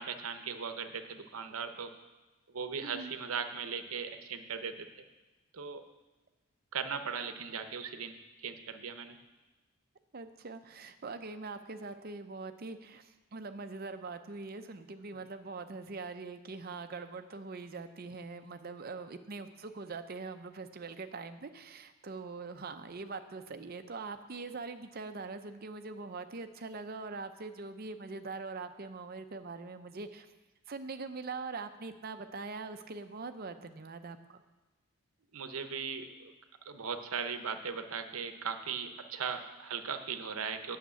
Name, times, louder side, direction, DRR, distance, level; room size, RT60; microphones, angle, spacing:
voice 1, 0.0-1.9 2.5-5.0 5.5-5.8 6.7-8.1 8.4-9.2 35.3-36.3 36.7-40.8, right 6 dB, 75° right, 8 dB, 0.8 m, -38 dB
voice 2, 2.8-3.1 10.1-30.3 30.7-34.4, right 4 dB, 40° right, 9 dB, 0.6 m, -43 dB
8.7 x 6.6 x 8.2 m, 1.1 s
head